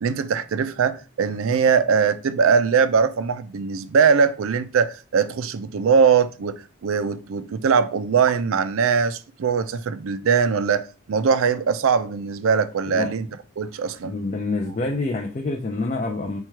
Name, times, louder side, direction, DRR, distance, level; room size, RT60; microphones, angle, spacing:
voice 1, 0.0-13.3 13.6-14.1, right 6 dB, 75° right, 0.4 m, -21 dB
voice 2, 14.0-16.4, left 3 dB, 35° left, 0.4 m, -27 dB
4.4 x 2.3 x 4.4 m
head